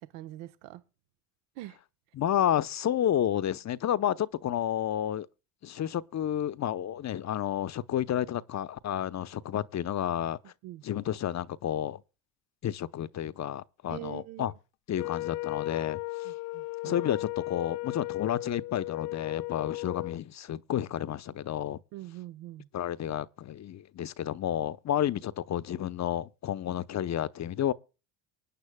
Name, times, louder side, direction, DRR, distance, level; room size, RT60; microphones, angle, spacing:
voice 1, 0.1-0.8 1.6-1.8 10.6-10.8 13.9-14.6 16.2-17.0 21.9-22.7, right 16 dB, 80° right, 1.1 m, -43 dB
voice 2, 2.1-5.3 5.6-10.4 10.8-12.0 12.6-14.5 14.9-16.3 16.8-21.8 22.7-27.7, left 10 dB, 40° left, 0.7 m, -31 dB
Wind instrument woodwind instrument, 14.9-20.2, left 23 dB, 70° left, 0.6 m, -36 dB
24.0 x 9.4 x 2.3 m
supercardioid pair, 85°, 45 cm